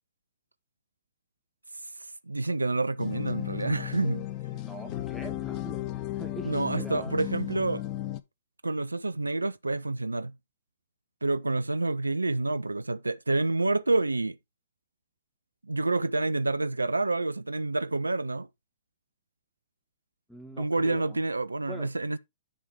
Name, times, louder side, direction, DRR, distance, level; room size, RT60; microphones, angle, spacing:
voice 1, 2.3-4.3 6.4-7.8 8.6-10.3 11.2-14.4 15.6-18.5 20.6-22.2, right 2 dB, 90° right, 0.4 m, -28 dB
sound 1, 3.0-8.2, left 14 dB, 35° left, 0.8 m, -35 dB
voice 2, 4.5-7.2 20.3-21.2 21.7-21.9, equal, ahead, 1.8 m, -43 dB
9.9 x 3.5 x 4.9 m
figure-of-eight pair, 115°, 0 cm